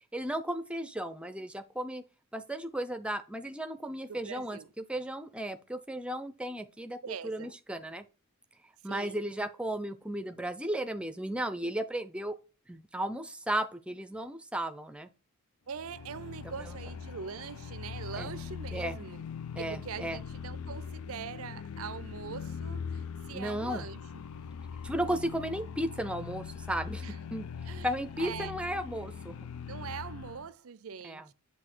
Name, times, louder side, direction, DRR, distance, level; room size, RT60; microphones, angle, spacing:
voice 1, 0.1-2.0 2.3-7.0 7.2-8.1 8.8-12.3 12.7-15.1 16.6-16.8 18.2-18.3 18.7-19.0 19.6-20.2 23.3-23.9 24.8-27.0 27.3-27.5 27.8-29.5 31.0-31.3, right 1 dB, 5° right, 0.5 m, -35 dB
voice 2, 4.1-4.7 7.0-7.6 8.8-9.2 15.7-19.3 19.5-24.0 27.0-27.2 27.6-27.9 28.2-28.6 29.7-31.3, right 6 dB, 70° right, 0.5 m, -42 dB
sound 1, 15.7-30.5, left 6 dB, 75° left, 0.4 m, -41 dB
7.7 x 2.8 x 6.0 m
head